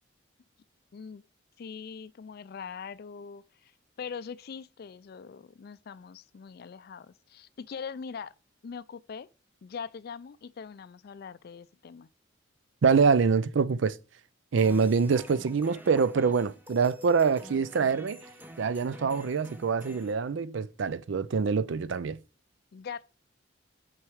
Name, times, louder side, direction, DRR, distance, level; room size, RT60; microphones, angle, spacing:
voice 1, 0.9-1.2 1.6-3.7 4.0-8.3 8.6-9.3 9.6-12.1 22.7-23.0, left 6 dB, 50° left, 0.4 m, -42 dB
voice 2, 12.8-14.0 14.5-18.2 18.6-22.2, right 5 dB, 70° right, 0.4 m, -25 dB
sound 1, 14.6-20.1, left 1 dB, 10° right, 0.7 m, -48 dB
6.1 x 4.6 x 4.8 m
head